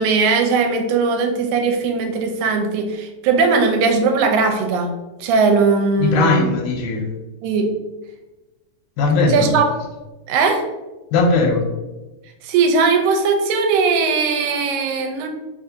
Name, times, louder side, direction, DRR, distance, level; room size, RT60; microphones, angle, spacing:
voice 1, 0.0-4.9 5.2-6.5 7.4-7.7 9.3-9.7 10.3-10.6 12.4-15.3, right 4 dB, 85° right, 4 dB, 2.0 m, -18 dB
voice 2, 6.0-7.0 9.0-9.5 11.1-11.6, left 3 dB, 90° left, 0 dB, 2.0 m, -18 dB
4.6 x 2.5 x 2.6 m, 1.1 s
omnidirectional pair, 3.4 m